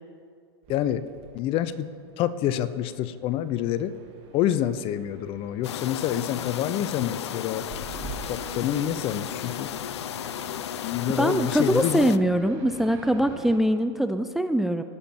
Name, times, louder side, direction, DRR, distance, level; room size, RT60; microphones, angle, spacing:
sound 1, 0.6-13.6, right 5 dB, 45° right, 1.7 m, -46 dB
voice 1, 0.7-1.1 1.3-1.9 2.2-3.9 4.3-7.7 8.0-9.7 10.8-12.1, left 11 dB, 40° left, 14 dB, 0.6 m, -27 dB
sound 2, 5.6-12.2, left 11 dB, 85° left, 0.4 m, -34 dB
voice 2, 11.2-14.8, equal, ahead, 9 dB, 0.4 m, -23 dB
18.0 x 7.2 x 4.5 m, 2.2 s
hypercardioid pair, 115°, 14 cm